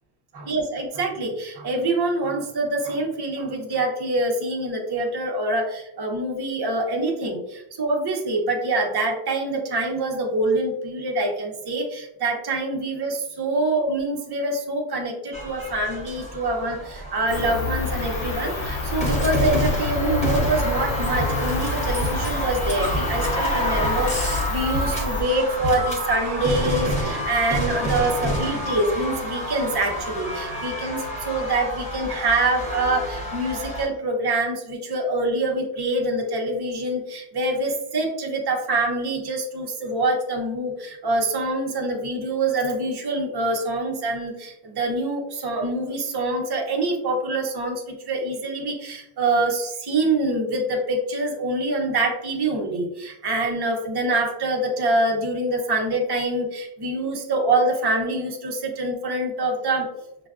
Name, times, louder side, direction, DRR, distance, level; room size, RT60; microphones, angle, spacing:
voice 1, 0.3-59.9, right 2 dB, 30° right, 1 dB, 0.5 m, -25 dB
sound 1, 15.3-33.9, equal, 5° left, 0.8 m, -29 dB
Cricket, 17.3-25.2, left 2 dB, 60° left, 0.7 m, -27 dB
5.8 x 2.2 x 2.4 m, 0.84 s
omnidirectional pair, 1.3 m